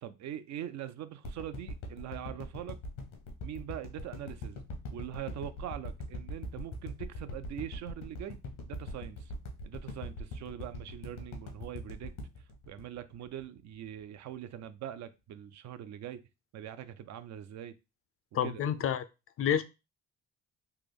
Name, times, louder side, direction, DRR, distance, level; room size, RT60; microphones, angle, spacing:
voice 1, 0.0-2.8 3.4-4.6 4.9-9.3 9.6-12.1 12.7-16.2 16.5-17.8 18.4-18.6, right 11 dB, 60° right, 0.4 m, -42 dB
sound 1, 1.2-13.6 14.0-14.1, left 1 dB, 85° left, 0.9 m, -41 dB
voice 2, 18.3-19.0 19.4-19.6, left 9 dB, 45° left, 0.4 m, -28 dB
3.4 x 2.0 x 3.4 m
cardioid pair, 85°, 31 cm